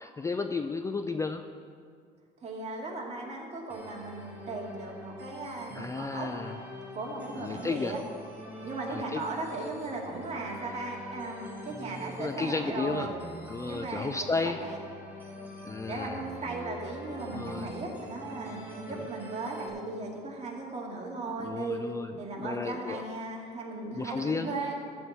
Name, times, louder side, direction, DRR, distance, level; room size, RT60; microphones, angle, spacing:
voice 1, 0.0-1.4 5.7-6.6 7.3-8.0 8.9-9.2 12.2-13.1 13.5-14.6 15.6-16.2 17.3-17.7 18.9-19.0 21.4-23.0 23.8-24.6, left 4 dB, 20° left, 7 dB, 0.4 m, -33 dB
voice 2, 2.4-6.3 6.9-8.0 8.6-13.1 13.7-14.8 15.3-21.8 22.2-24.8, right 3 dB, 40° right, -2 dB, 2.5 m, -37 dB
sound 1, 3.7-19.7, equal, 10° right, 3.0 m, -44 dB
13.5 x 4.5 x 8.5 m, 2.1 s
cardioid pair, 110°, 17 cm